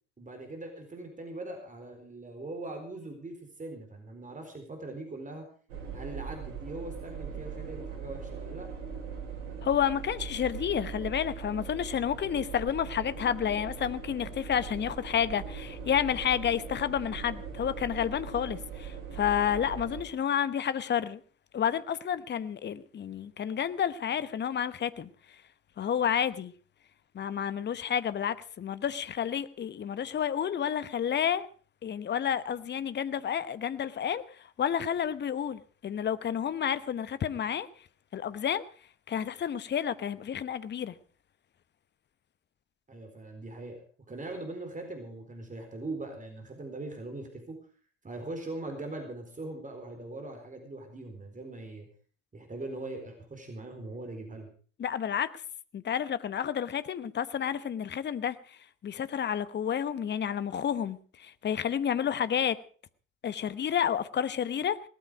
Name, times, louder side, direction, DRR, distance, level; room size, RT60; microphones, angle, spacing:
voice 1, 0.2-5.5 5.9-8.7 42.9-43.8 44.1-47.6 48.0-51.9 52.3-54.5, right 2 dB, 20° right, 4.3 m, -41 dB
sound 1, 5.7-20.1, right 6 dB, 65° right, 3.9 m, -40 dB
voice 2, 9.6-21.2 21.5-25.1 25.8-26.5 27.1-31.5 31.8-34.2 34.6-37.7 38.1-38.6 39.1-40.9 54.8-55.3 55.7-58.6 58.8-62.6 63.2-64.9, left 8 dB, 25° left, 1.0 m, -30 dB
18.5 x 13.5 x 5.1 m
figure-of-eight pair, 65°, 39 cm